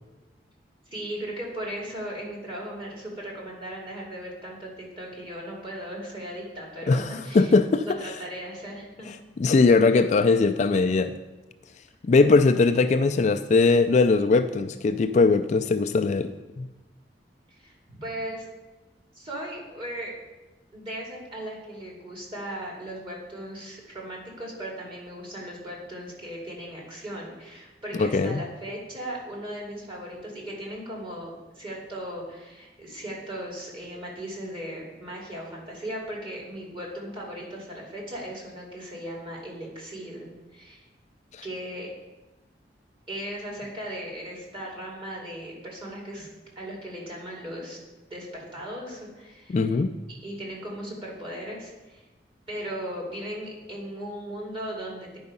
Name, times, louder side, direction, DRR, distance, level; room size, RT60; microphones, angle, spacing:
voice 1, 0.9-7.5 7.8-9.1 9.5-9.6 17.5-18.5 19.1-20.1 20.7-40.9 41.4-41.9 43.1-46.3 46.6-49.8 50.1-52.0 52.5-55.2, equal, 30° right, -3 dB, 2.5 m, -37 dB
voice 2, 6.9-7.8 9.4-11.1 12.0-16.3 16.6-16.7 28.0-28.4 41.3-41.4 49.5-49.9, left 3 dB, 40° left, 8 dB, 0.3 m, -20 dB
9.7 x 4.8 x 5.4 m, 1.1 s
head